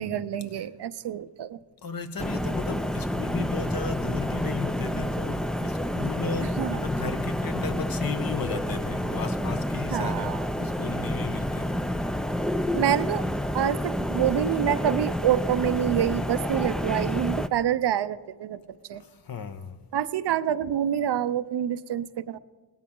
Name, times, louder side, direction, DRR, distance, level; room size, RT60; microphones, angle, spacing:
voice 1, 0.0-1.6 6.6-6.8 9.9-10.5 12.7-13.3 13.5-18.6 18.9-19.0 19.9-22.4, right 10 dB, 65° right, 0.7 m, -27 dB
voice 2, 1.8-11.9 18.9-19.8, left 5 dB, 50° left, 1.1 m, -35 dB
sound 1, 2.2-17.5, equal, ahead, 0.4 m, -29 dB
17.5 x 12.5 x 3.8 m
cardioid pair, 75°, 43 cm